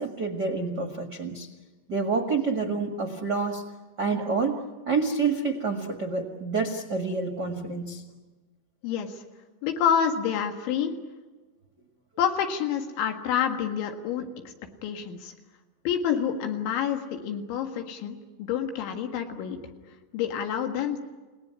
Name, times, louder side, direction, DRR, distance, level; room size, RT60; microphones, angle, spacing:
voice 1, 0.0-1.5 1.9-3.6 4.0-8.0, right 4 dB, 50° right, 5 dB, 1.1 m, -28 dB
voice 2, 8.8-9.2 9.6-11.0 12.2-14.5 14.8-15.3 15.9-19.6 20.1-21.0, left 8 dB, 90° left, 5 dB, 4.1 m, -28 dB
30.0 x 18.5 x 9.7 m, 1.3 s
omnidirectional pair, 5.1 m